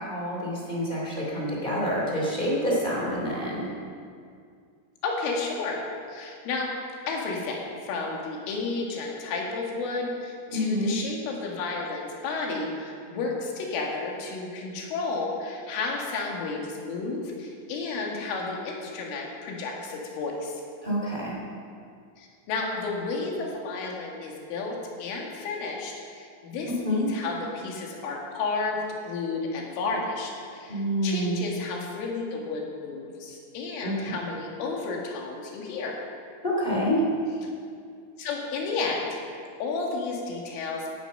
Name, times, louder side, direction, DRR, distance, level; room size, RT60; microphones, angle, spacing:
voice 1, 0.0-3.7 10.5-11.0 20.8-21.4 26.7-27.1 30.7-31.4 33.8-34.2 36.4-37.0, equal, 15° left, -4 dB, 1.9 m, -27 dB
voice 2, 5.0-5.8 6.1-6.7 7.1-20.6 22.2-36.0 38.2-39.1 39.6-41.0, left 3 dB, 90° left, -1 dB, 4.6 m, -32 dB
16.5 x 11.0 x 5.5 m, 2.3 s
omnidirectional pair, 5.5 m